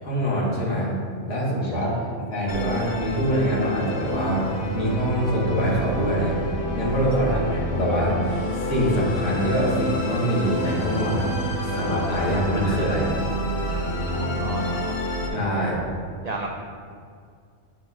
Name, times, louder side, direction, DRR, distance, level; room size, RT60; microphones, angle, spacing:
voice 1, 0.0-1.0 1.3-1.9 2.3-6.4 6.7-8.2 8.5-11.3 11.6-13.1 15.3-15.8, equal, 80° left, -5 dB, 1.8 m, -24 dB
voice 2, 1.6-2.1 14.0-15.1 16.2-16.5, right 3 dB, 70° right, 1 dB, 0.3 m, -34 dB
Musical instrument, 2.5-15.3, equal, 55° left, 1.0 m, -28 dB
sound 1, 8.3-12.4, left 2 dB, 25° left, 1.0 m, -36 dB
9.0 x 5.0 x 2.4 m, 2.2 s
omnidirectional pair, 1.2 m